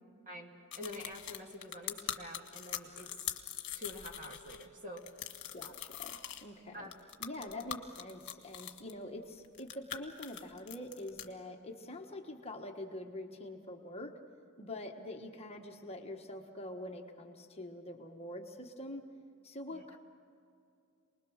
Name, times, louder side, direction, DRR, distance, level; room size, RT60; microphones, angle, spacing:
voice 1, 0.3-3.1 3.7-5.2 6.7-6.9 7.4-7.6 19.7-19.8, left 1 dB, 35° right, 2 dB, 2.4 m, -47 dB
sound 1, 0.7-4.7 5.0-6.4 6.9-8.9 9.4-11.3, left 10 dB, 55° left, 1.6 m, -42 dB
voice 2, 5.5-6.9 7.2-14.1 14.6-19.0 19.4-20.0, left 1 dB, 30° left, 3 dB, 1.4 m, -45 dB
28.0 x 20.5 x 6.4 m, 2.5 s
head